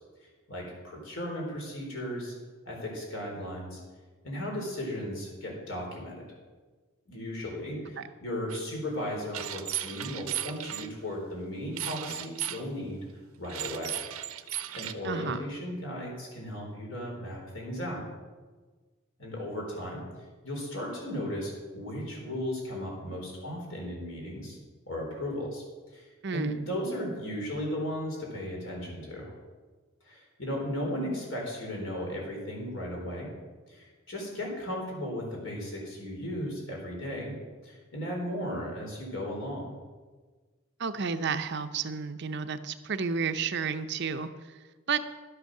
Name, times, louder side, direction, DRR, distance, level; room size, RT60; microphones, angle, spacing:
voice 1, 0.5-2.3 2.7-3.8 4.2-6.2 7.1-13.0 13.4-14.0 14.5-18.1 19.2-20.0 20.4-24.6 24.9-25.6 25.9-29.3 30.1-33.3 33.7-37.3 37.6-39.7, equal, 65° left, -1 dB, 4.1 m, -36 dB
sound 1, 8.5-8.6 9.3-10.9 11.8-12.6 13.4-14.9, right 12 dB, 85° right, 0.7 m, -35 dB
voice 2, 15.0-15.4 26.2-26.5 40.8-44.3 44.9-45.0, right 5 dB, 55° right, 10 dB, 0.6 m, -31 dB
12.0 x 8.2 x 6.5 m, 1.4 s
head